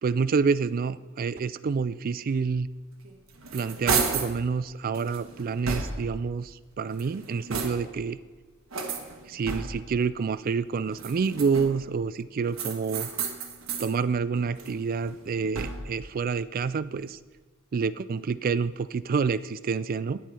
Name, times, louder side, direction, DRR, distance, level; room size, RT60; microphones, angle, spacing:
voice 1, 0.0-2.7 3.5-8.2 9.3-13.1 13.8-17.2 17.7-20.2, right 5 dB, 45° right, 16 dB, 0.4 m, -28 dB
sound 1, 3.0-4.4 4.9-6.2 6.8-8.0 8.7-10.0 10.9-11.9 12.5-13.9 14.4-16.0, right 5 dB, 70° right, 1.4 m, -33 dB
10.5 x 9.4 x 5.6 m, 1.4 s
head